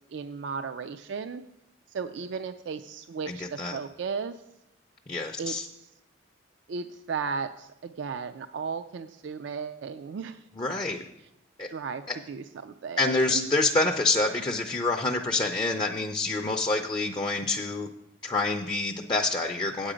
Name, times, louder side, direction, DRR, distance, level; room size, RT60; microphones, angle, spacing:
voice 1, 0.0-1.4 1.9-4.4 5.4-5.9 6.7-10.4 11.7-13.5, right 5 dB, 65° right, 9 dB, 0.4 m, -35 dB
voice 2, 3.3-3.8 5.1-5.7 10.6-11.0 11.6-11.7 12.1-12.2 13.0-17.9 18.2-19.9, left 2 dB, 25° left, 2 dB, 0.4 m, -27 dB
8.8 x 8.2 x 5.0 m, 0.86 s
head